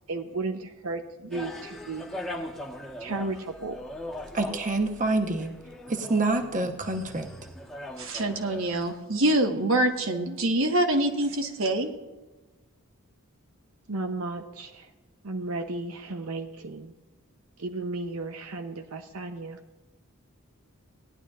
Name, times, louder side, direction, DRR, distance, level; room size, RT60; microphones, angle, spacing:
voice 1, 0.1-2.1 3.0-3.8 13.9-14.9 15.2-16.9 17.6-19.6, right 3 dB, 85° right, 5 dB, 0.8 m, -34 dB
sound 1, 1.3-9.0, left 1 dB, ahead, 1.3 m, -40 dB
voice 2, 4.3-5.5 5.9-7.3, right 2 dB, 35° right, 4 dB, 1.0 m, -26 dB
voice 3, 8.0-11.9, right 1 dB, 65° right, 4 dB, 1.4 m, -25 dB
18.5 x 11.0 x 2.4 m, 1.2 s
head